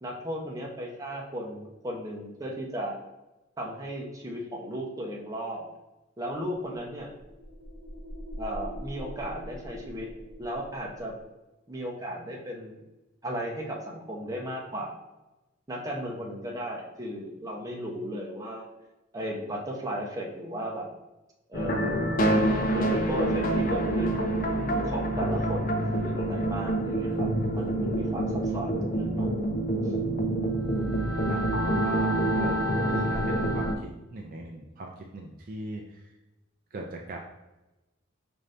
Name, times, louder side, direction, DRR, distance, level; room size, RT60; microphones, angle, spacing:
voice 1, 0.0-2.9 3.6-5.6 6.2-7.1 8.4-10.1 10.4-11.1 11.7-12.8 13.2-14.9 15.7-18.6 19.1-20.9 21.5-24.3 24.8-29.3, equal, 15° right, -2 dB, 0.7 m, -35 dB
sound 1, 6.3-11.3, equal, 80° left, 1.1 m, -42 dB
sound 2, 21.5-33.7, right 1 dB, 40° left, 0.5 m, -27 dB
voice 2, 31.8-36.1 36.7-37.2, right 2 dB, 45° right, 1 dB, 0.4 m, -39 dB
5.1 x 2.6 x 3.2 m, 1.0 s
head